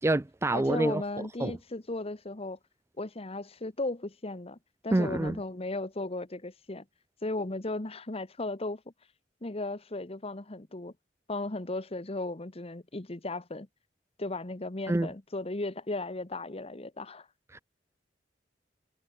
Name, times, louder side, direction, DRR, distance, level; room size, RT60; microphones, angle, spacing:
voice 1, 0.0-1.6 4.9-5.4 14.9-15.1 17.5-17.6, right 2 dB, 15° right, 0.4 m, -28 dB
voice 2, 0.5-2.6 3.0-4.6 4.8-6.8 7.2-8.8 9.4-10.9 11.3-13.7 14.2-17.3, left 2 dB, 35° left, 1.3 m, -36 dB
head